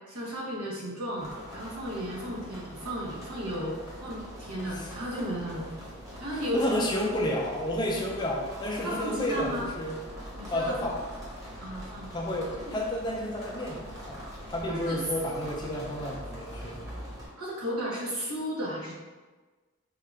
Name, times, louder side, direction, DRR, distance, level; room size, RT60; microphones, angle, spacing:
voice 1, 0.1-5.6 6.2-6.8 8.8-9.7 10.3-10.7 11.6-12.1 12.6-12.8 14.7-15.0 17.4-18.9, equal, 80° right, -4 dB, 1.0 m, -34 dB
sound 1, 1.2-17.3, equal, 15° right, 0.9 m, -43 dB
voice 2, 6.5-10.0 10.5-11.0 12.1-14.2 14.5-16.8, left 1 dB, 20° left, -1 dB, 0.4 m, -31 dB
3.7 x 2.4 x 3.3 m, 1.3 s
head